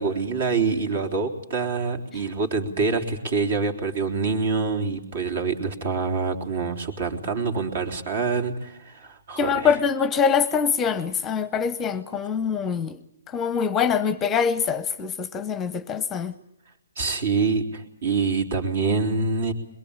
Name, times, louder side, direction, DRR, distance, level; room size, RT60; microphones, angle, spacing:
voice 1, 0.0-9.7 17.0-19.5, right 4 dB, 55° right, 3.6 m, -26 dB
voice 2, 9.4-13.0 13.3-16.3, left 6 dB, 15° left, 0.8 m, -24 dB
22.5 x 22.0 x 8.8 m
hypercardioid pair, 145°, 0 cm